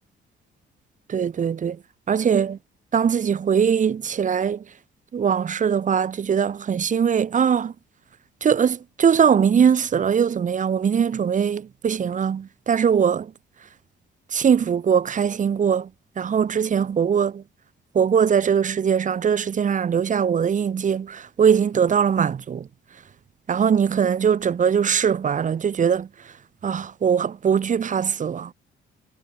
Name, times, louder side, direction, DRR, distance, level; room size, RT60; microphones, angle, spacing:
voice 1, 1.1-1.8 2.1-2.6 2.9-4.6 5.1-7.7 8.4-13.3 14.3-15.9 16.2-17.4 17.9-22.7 23.5-26.1 26.6-28.5, right 7 dB, 40° right, 0.8 m, -21 dB
cardioid pair, 90°, 20 cm